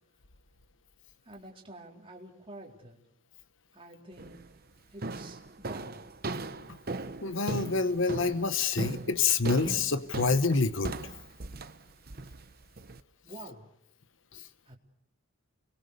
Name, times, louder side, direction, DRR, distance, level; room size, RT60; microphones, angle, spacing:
voice 1, 1.2-3.0 3.7-4.4 4.9-6.1 13.2-13.7 14.7-14.8, right 2 dB, 25° right, -1 dB, 4.2 m, -48 dB
sound 1, 4.2-4.5 5.0-13.0, right 2 dB, 45° right, 0.9 m, -38 dB
voice 2, 7.2-10.9, left 4 dB, 60° left, 12 dB, 1.1 m, -27 dB
29.5 x 23.0 x 6.8 m, 0.70 s
head